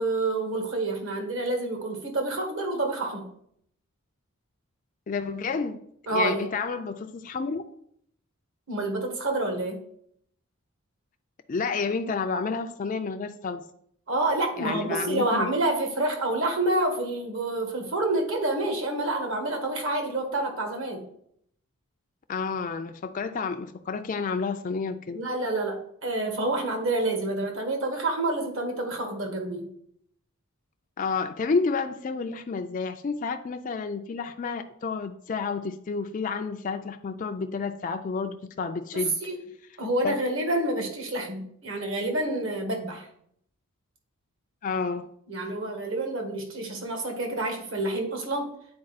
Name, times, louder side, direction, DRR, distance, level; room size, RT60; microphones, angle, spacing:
voice 1, 0.0-3.3 6.1-6.4 8.7-9.8 14.1-21.0 25.1-29.7 38.9-39.3 39.8-43.1 45.3-48.5, right 2 dB, 60° right, 4 dB, 1.5 m, -28 dB
voice 2, 5.1-5.8 6.1-7.6 11.5-13.7 14.6-15.5 22.3-25.2 31.0-39.1 40.0-40.2 44.6-45.1, left 4 dB, 35° left, 6 dB, 0.3 m, -30 dB
8.6 x 4.2 x 4.0 m, 0.68 s
head